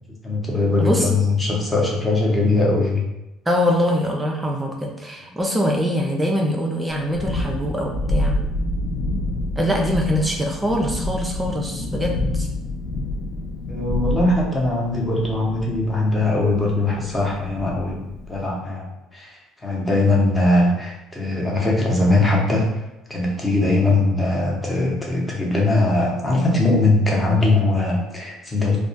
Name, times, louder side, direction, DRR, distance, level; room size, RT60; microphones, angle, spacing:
voice 1, 0.2-3.0 13.7-22.8 23.1-28.8, left 2 dB, 15° left, -2 dB, 0.7 m, -20 dB
voice 2, 0.8-1.1 3.5-8.4 9.6-12.5, equal, 10° right, 0 dB, 0.3 m, -23 dB
Thunderstorm, 6.9-18.5, left 1 dB, 75° left, 0.4 m, -28 dB
2.2 x 2.1 x 2.7 m, 0.94 s
cardioid pair, 100°, 0 cm